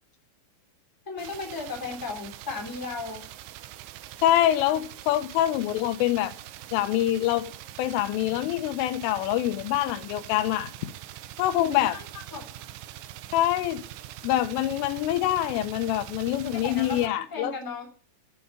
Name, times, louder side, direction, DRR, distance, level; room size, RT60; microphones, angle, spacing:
voice 1, 1.0-3.2 11.5-12.4 16.6-17.9, left 4 dB, 5° left, 1.6 m, -36 dB
sound 1, 1.2-17.1, right 13 dB, 80° right, 2.9 m, -43 dB
voice 2, 4.2-6.3 6.7-7.5 7.8-10.7 11.4-12.0 13.3-13.8 14.2-17.5, left 13 dB, 90° left, 3.5 m, -25 dB
9.7 x 8.5 x 8.8 m
omnidirectional pair, 5.6 m